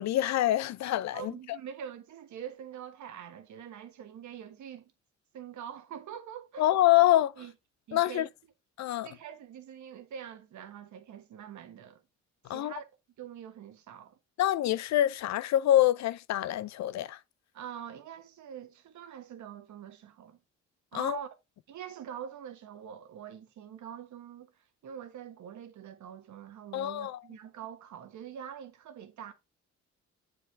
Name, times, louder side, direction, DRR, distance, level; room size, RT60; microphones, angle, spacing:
voice 1, 0.0-1.6 6.6-7.3 7.9-8.3 8.8-9.1 12.5-12.7 14.4-17.2 20.9-21.2 26.7-27.2, left 13 dB, 65° left, 0.5 m, -26 dB
voice 2, 1.1-4.9 5.3-6.7 7.4-7.5 7.9-8.3 9.0-12.0 12.4-12.8 13.2-14.2 17.5-20.4 20.9-21.3 21.7-24.5 24.8-29.3, right 9 dB, 70° right, 1.3 m, -44 dB
7.6 x 4.9 x 3.3 m
cardioid pair, 90°, 30 cm